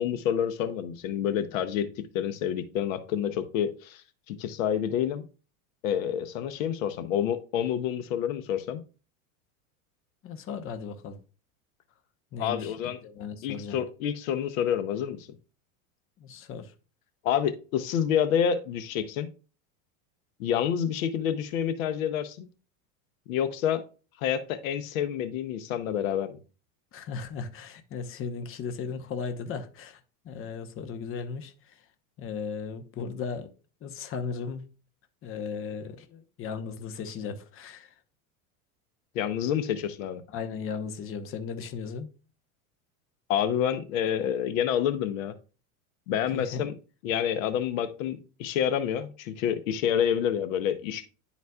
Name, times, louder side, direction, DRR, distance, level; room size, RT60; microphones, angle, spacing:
voice 1, 0.0-5.2 5.8-8.8 12.4-13.0 13.4-15.3 17.2-19.3 20.4-22.5 23.3-23.8 24.2-26.4 39.1-40.2 43.3-45.3 46.1-46.7 47.0-51.1, left 9 dB, 75° left, 0.8 m, -28 dB
voice 2, 10.2-11.2 12.3-12.7 13.0-13.8 16.2-16.7 26.9-31.8 32.2-33.5 33.8-34.6 35.2-38.0 40.3-42.1 46.3-46.7, left 5 dB, 30° left, 0.8 m, -36 dB
10.5 x 4.1 x 2.3 m
supercardioid pair, 115°, 41 cm